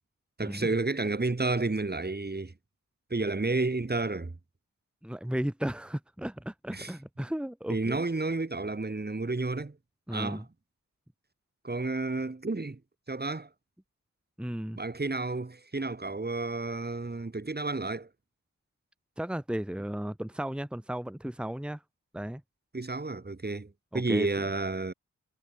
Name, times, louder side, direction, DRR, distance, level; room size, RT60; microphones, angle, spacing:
voice 1, 0.4-2.5 3.1-4.4 6.7-6.9 7.7-9.8 10.1-10.4 11.6-12.8 13.1-13.5 14.8-18.1 22.7-24.9, right 3 dB, 30° right, 2.8 m, -31 dB
voice 2, 5.0-8.0 10.1-10.5 14.4-14.8 19.2-21.8 22.1-22.4 23.9-24.5, right 1 dB, 5° right, 1.4 m, -34 dB
cardioid pair, 45°, 33 cm